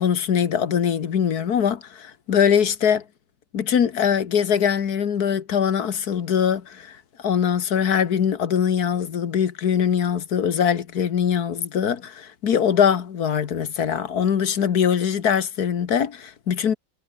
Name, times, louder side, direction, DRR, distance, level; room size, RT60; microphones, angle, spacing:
voice 1, 0.0-3.0 3.5-7.0 7.2-16.7, left 8 dB, 85° left, 1.9 m, -22 dB
omnidirectional pair, 1.6 m